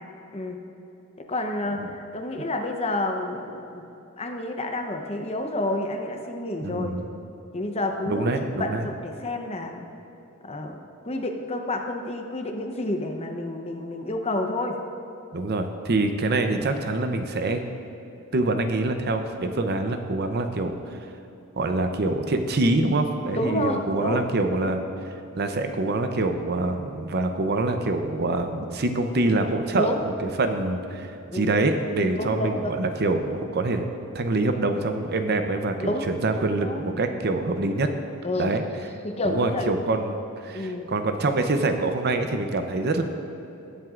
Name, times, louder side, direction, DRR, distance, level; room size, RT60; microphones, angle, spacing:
voice 1, 1.2-3.8 4.2-7.0 7.5-8.3 8.6-9.8 10.4-14.8 23.3-24.3 29.7-30.0 31.3-31.5 32.2-32.8 35.8-36.1 36.6-36.8 37.2-37.3 38.2-38.5 39.0-39.7 40.5-40.9, left 1 dB, 30° left, 4 dB, 0.8 m, -29 dB
voice 2, 6.6-7.1 8.1-8.8 15.3-17.6 18.3-21.0 21.6-24.8 25.4-33.8 34.1-37.9 38.4-38.6 39.2-43.0, right 2 dB, 50° right, 6 dB, 0.7 m, -25 dB
21.0 x 7.6 x 2.5 m, 3.0 s
head